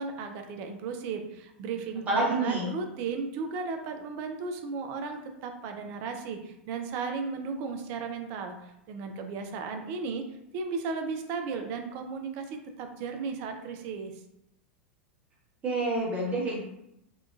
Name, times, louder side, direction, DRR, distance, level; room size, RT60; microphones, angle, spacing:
voice 1, 0.0-8.6 8.9-10.2 10.5-14.1, right 4 dB, 40° right, 5 dB, 0.4 m, -35 dB
voice 2, 2.1-2.7 15.6-16.6, right 2 dB, 25° right, -5 dB, 1.0 m, -27 dB
2.7 x 2.3 x 2.3 m, 0.82 s
figure-of-eight pair, 90°, 6 cm